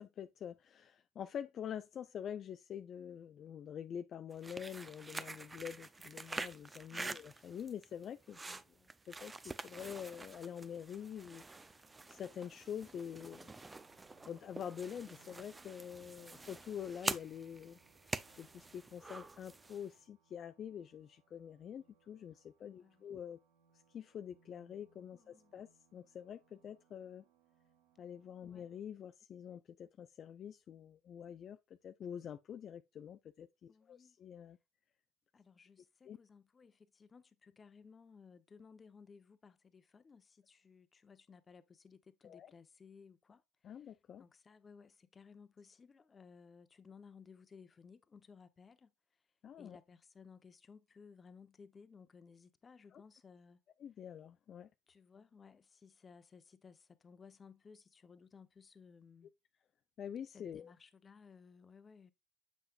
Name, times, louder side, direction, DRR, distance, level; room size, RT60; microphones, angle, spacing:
voice 1, 0.0-8.6 9.1-11.4 11.7-11.8 12.1-13.5 14.2-23.4 23.9-27.2 28.0-31.6 31.8-34.6 36.1-36.2 42.2-42.5 43.6-44.2 49.4-49.8 52.9-53.0 53.8-54.7 60.0-60.7, left 8 dB, 50° left, 0.4 m, -46 dB
sound 1, 4.3-19.9, right 3 dB, 20° right, 0.5 m, -47 dB
voice 2, 6.9-7.3 22.6-23.1 25.2-25.6 28.5-28.7 33.7-34.2 35.3-48.9 49.6-53.6 54.9-59.3 60.3-62.1, left 5 dB, 30° left, 0.8 m, -59 dB
sound 2, 9.5-28.8, right 5 dB, 80° right, 2.1 m, -73 dB
7.4 x 5.7 x 2.4 m
supercardioid pair, 85°, 0 cm